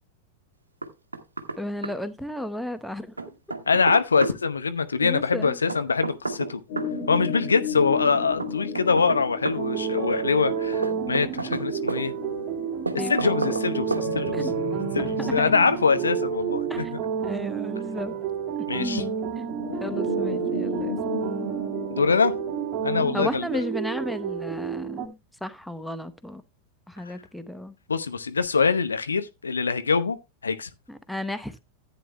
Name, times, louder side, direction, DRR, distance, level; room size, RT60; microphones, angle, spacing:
Knock, 0.8-1.6 1.8-1.9 3.2-4.4 5.7-6.9 8.4-9.6 10.8-12.0 12.9-13.7 13.9-14.1, right 3 dB, 80° right, 1.0 m, -30 dB
voice 1, 1.6-3.1 5.0-5.6 13.0-13.1 14.3-14.5 15.2-15.5 16.7-16.9 17.2-18.2 18.8-19.5 19.8-21.0 23.1-26.4 26.9-27.7 30.9-31.6, left 1 dB, ahead, 0.8 m, -33 dB
voice 2, 3.7-6.6 7.1-12.1 13.1-14.5 14.9-16.8 18.7-19.0 21.9-22.3 22.8-23.6 27.1-27.2 27.9-30.2 30.4-30.7, left 5 dB, 75° left, 0.8 m, -24 dB
sound 1, 6.7-18.5 19.3-23.4, left 4 dB, 55° left, 2.6 m, -36 dB
sound 2, 9.6-25.1, right 7 dB, 30° right, 2.0 m, -30 dB
14.0 x 9.0 x 2.2 m
figure-of-eight pair, 90°, 0 cm